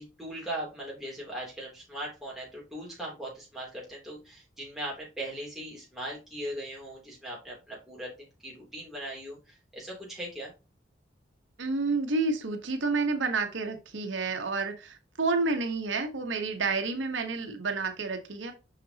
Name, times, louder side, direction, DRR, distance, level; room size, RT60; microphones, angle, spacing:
voice 1, 0.0-10.5, right 1 dB, ahead, -5 dB, 2.8 m, -39 dB
voice 2, 11.6-18.5, right 3 dB, 90° right, 5 dB, 1.0 m, -30 dB
6.0 x 5.7 x 2.8 m, 0.29 s
head